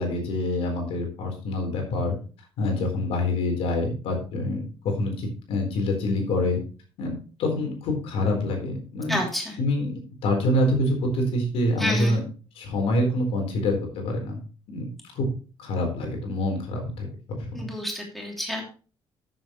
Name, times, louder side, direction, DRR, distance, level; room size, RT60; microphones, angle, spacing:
voice 1, 0.0-2.2 2.6-6.6 7.0-9.2 9.6-9.9 10.2-12.2 12.6-14.4 14.7-14.9 15.1-15.3 15.6-17.6, left 1 dB, 80° left, 2 dB, 4.1 m, -26 dB
voice 2, 9.1-9.6 11.8-12.2 17.5-18.6, left 1 dB, ahead, -1 dB, 3.0 m, -29 dB
13.5 x 7.7 x 3.1 m, 0.35 s
cardioid pair, 145°, 10 cm